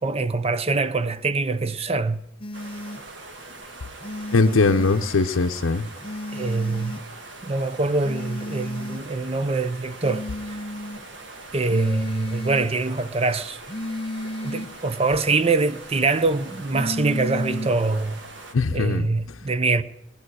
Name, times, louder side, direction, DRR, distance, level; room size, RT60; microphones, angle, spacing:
voice 1, 0.0-2.2 6.3-7.0 7.5-10.5 11.5-13.6 14.4-18.2 18.7-19.8, right 3 dB, 30° right, 0.6 m, -24 dB
sound 1, 2.4-3.0 4.0-5.0 6.0-7.0 8.0-9.0 10.0-11.0 11.7-12.7 13.7-14.7 16.7-17.8, left 1 dB, 25° left, 0.6 m, -33 dB
sound 2, 2.5-18.5, right 2 dB, 60° right, 1.7 m, -42 dB
voice 2, 4.3-5.9 18.5-19.1, left 3 dB, 80° left, 0.7 m, -20 dB
20.0 x 10.5 x 6.3 m
head